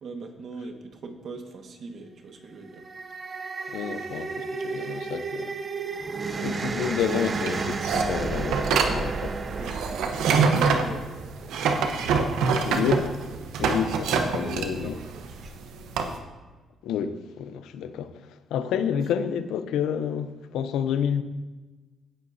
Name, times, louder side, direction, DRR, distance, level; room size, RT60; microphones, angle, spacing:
voice 1, 0.0-2.8 9.6-12.8 13.3-13.4 14.3-15.5, right 3 dB, 60° right, 1.6 m, -42 dB
sound 1, 2.6-11.9, right 4 dB, 40° right, 0.7 m, -32 dB
voice 2, 3.7-5.5 6.4-9.3 9.6-9.7 12.6-13.1 13.6-15.0 16.8-18.1 18.5-21.2, left 8 dB, 85° left, 0.7 m, -29 dB
sound 2, 7.0-16.2, right 5 dB, 85° right, 1.0 m, -25 dB
17.0 x 7.8 x 2.7 m
cardioid pair, 90°, 0 cm